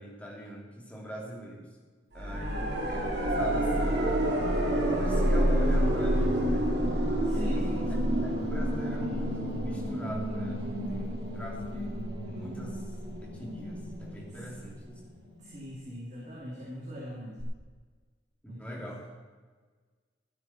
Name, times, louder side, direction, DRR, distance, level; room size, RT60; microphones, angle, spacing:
voice 1, 0.0-1.7 2.1-3.0 3.4-4.0 4.8-6.7 7.3-12.9 13.2-15.0 16.2-16.3 18.4-19.1, equal, 10° left, -3 dB, 3.0 m, -42 dB
sound 1, 2.2-15.1 17.4-17.5, right 1 dB, 65° right, 2.4 m, -29 dB
voice 2, 2.3-2.9 7.2-7.9 14.7-14.8 15.4-17.5 18.5-18.8, left 1 dB, 40° right, -5 dB, 2.9 m, -42 dB
15.5 x 11.5 x 4.4 m, 1.4 s
head